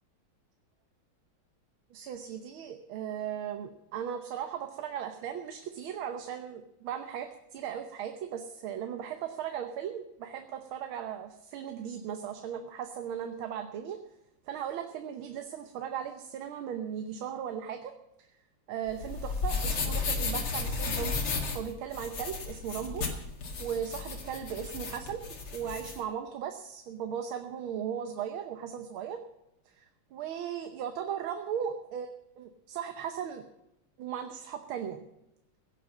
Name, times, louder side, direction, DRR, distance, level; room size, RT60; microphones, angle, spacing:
voice 1, 1.9-14.0 14.5-17.9 18.7-21.2 21.5-23.1 23.6-29.2 29.7-33.4 34.0-35.1, right 8 dB, 75° right, 7 dB, 1.7 m, -37 dB
sound 1, 18.9-26.0, left 4 dB, 85° left, 3.0 m, -34 dB
17.0 x 7.7 x 7.2 m, 0.87 s
omnidirectional pair, 2.3 m